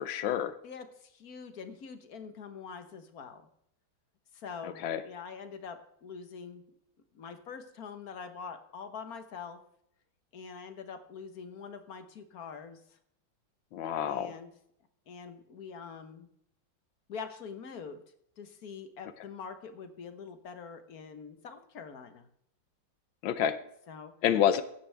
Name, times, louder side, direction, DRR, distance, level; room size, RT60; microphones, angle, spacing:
voice 1, 0.0-0.5 4.6-5.0 13.7-14.3 23.2-23.6 24.2-24.6, left 9 dB, 90° left, 12 dB, 1.6 m, -28 dB
voice 2, 0.6-3.4 4.3-6.6 7.1-9.6 10.3-12.8 14.0-14.5 15.1-16.3 17.1-18.0 18.4-22.3 23.9-24.1, left 6 dB, 55° left, 9 dB, 1.5 m, -44 dB
15.5 x 10.0 x 3.4 m, 0.72 s
omnidirectional pair, 2.1 m